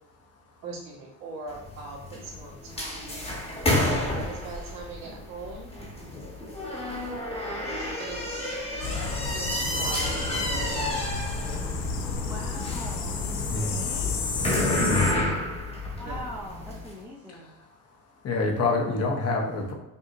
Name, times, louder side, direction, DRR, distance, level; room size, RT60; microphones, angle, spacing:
voice 1, 0.6-3.0 3.8-5.7 8.0-8.5 9.3-11.2 14.9-15.3 16.0-16.2, right 3 dB, 55° right, -3 dB, 1.5 m, -40 dB
sound 1, 1.5-16.9, left 1 dB, 15° left, 1.0 m, -30 dB
sound 2, 8.8-15.1, left 5 dB, 85° left, 0.8 m, -31 dB
voice 2, 12.2-14.2 15.9-17.5, equal, 5° right, -4 dB, 0.5 m, -41 dB
voice 3, 18.2-19.7, left 3 dB, 40° left, 1 dB, 0.7 m, -26 dB
5.3 x 2.7 x 2.5 m, 1.0 s
cardioid pair, 130°, 39 cm